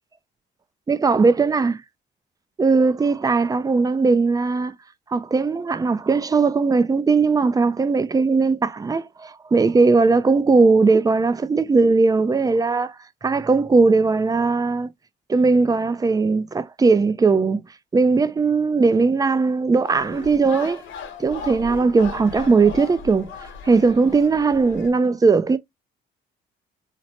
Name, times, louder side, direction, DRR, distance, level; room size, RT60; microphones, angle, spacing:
voice 1, 0.9-1.8 2.6-4.7 5.1-13.0 13.2-14.9 15.3-17.6 17.9-20.8 21.2-23.3 23.6-25.6, right 4 dB, 20° right, 0.4 m, -19 dB
sound 1, 19.9-24.9, left 6 dB, 75° left, 1.0 m, -37 dB
4.2 x 2.0 x 2.9 m
cardioid pair, 90°, 20 cm